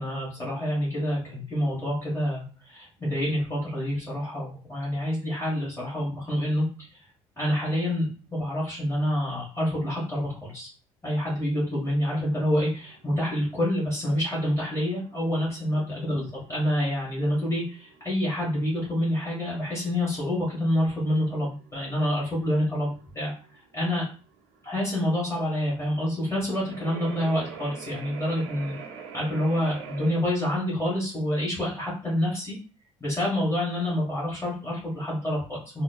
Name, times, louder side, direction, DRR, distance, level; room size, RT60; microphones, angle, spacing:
voice 1, 0.0-6.7 7.4-10.7 11.0-23.3 23.7-24.0 24.6-28.8 29.1-32.5 33.0-35.8, left 1 dB, 20° left, -6 dB, 1.5 m, -27 dB
sound 1, 12.2-30.1, right 6 dB, 65° right, 0.7 m, -45 dB
3.8 x 2.2 x 2.4 m, 0.38 s
figure-of-eight pair, 55°, 15 cm